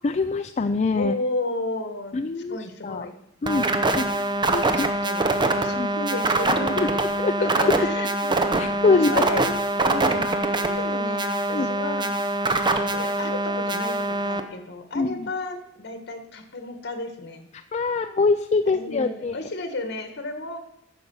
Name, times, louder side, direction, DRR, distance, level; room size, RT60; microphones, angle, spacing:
voice 1, 0.0-1.1 2.1-2.6 2.8-3.1 3.4-3.7 4.0-4.1 4.5-4.9 5.8-5.9 6.6-6.9 7.2-7.3 8.6-9.2 11.5-11.7 15.0-15.3 17.7-19.4, left 4 dB, 35° left, 7 dB, 0.4 m, -23 dB
voice 2, 0.9-2.2 2.5-3.1 3.8-4.3 4.5-5.3 5.6-7.1 7.4-9.5 9.8-12.1 12.5-17.5 18.7-20.6, left 2 dB, 55° left, 8 dB, 1.5 m, -33 dB
sound 1, 3.5-14.4, right 2 dB, 25° right, 0.8 m, -24 dB
10.0 x 6.7 x 7.0 m, 0.84 s
head